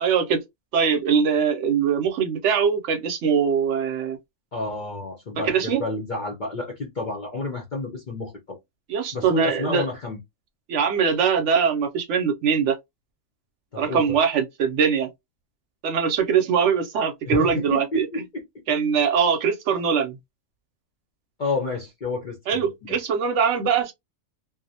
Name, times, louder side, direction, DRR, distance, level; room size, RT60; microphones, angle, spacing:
voice 1, 0.0-0.4 0.7-4.2 5.4-5.8 8.9-9.9 10.7-12.8 13.8-15.1 15.8-18.1 18.7-20.2 22.5-23.9, right 6 dB, 70° right, 0.8 m, -22 dB
voice 2, 4.5-8.6 9.1-10.2 13.7-14.2 17.2-18.6 19.7-19.8 21.4-23.0, left 2 dB, 55° left, 0.5 m, -30 dB
2.5 x 2.0 x 2.6 m
omnidirectional pair, 1.4 m